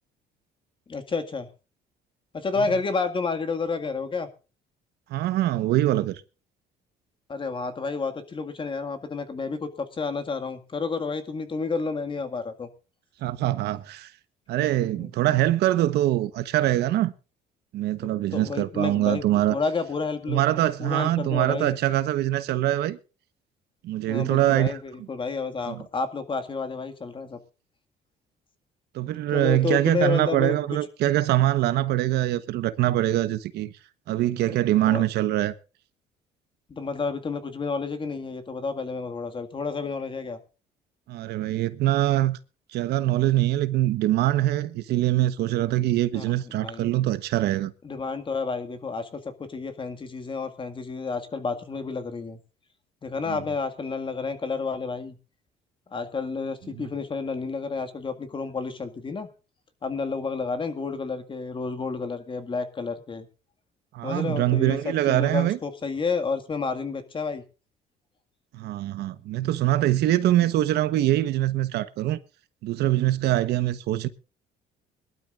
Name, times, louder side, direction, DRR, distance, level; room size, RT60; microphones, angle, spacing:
voice 1, 0.9-1.5 2.3-4.3 7.3-12.7 14.8-15.1 18.3-19.2 19.5-21.8 24.1-27.4 29.3-30.8 34.9-35.0 36.7-40.4 46.1-46.3 46.6-46.9 47.8-52.4 53.0-55.2 55.9-59.3 59.8-63.3 64.0-67.4 70.4-70.5, left 4 dB, 30° left, 2.0 m, -30 dB
voice 2, 5.1-6.2 13.2-14.1 14.5-17.1 17.7-19.6 20.3-23.0 23.8-24.8 25.7-25.8 28.9-33.7 34.1-35.5 41.1-42.4 42.7-47.7 53.3-53.4 56.8-56.9 63.9-65.6 68.5-72.2 72.6-74.1, right 14 dB, 75° right, 1.1 m, -23 dB
22.0 x 12.0 x 2.5 m
cardioid pair, 110°, 17 cm